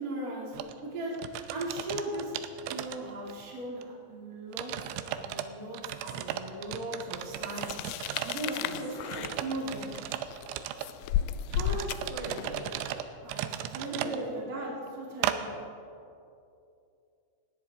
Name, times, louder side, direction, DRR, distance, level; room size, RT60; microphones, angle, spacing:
voice 1, 0.0-2.3 2.7-4.7 5.1-7.8 8.2-9.9 11.5-11.8 13.2-15.6, right 1 dB, 30° right, -4 dB, 1.9 m, -38 dB
sound 1, 0.5-0.7 1.2-3.4 3.8-3.9 4.5-5.5 5.8-8.5 9.1-10.9 11.5-14.2 15.2-15.4, right 12 dB, 85° right, 3.0 m, -36 dB
sound 2, 7.5-12.6, left 12 dB, 90° left, 2.4 m, -34 dB
voice 2, 8.4-9.2 11.1-11.3 11.9-12.6 13.9-14.3, right 2 dB, 45° right, -4 dB, 3.5 m, -40 dB
19.0 x 18.5 x 3.6 m, 2.6 s
omnidirectional pair, 5.4 m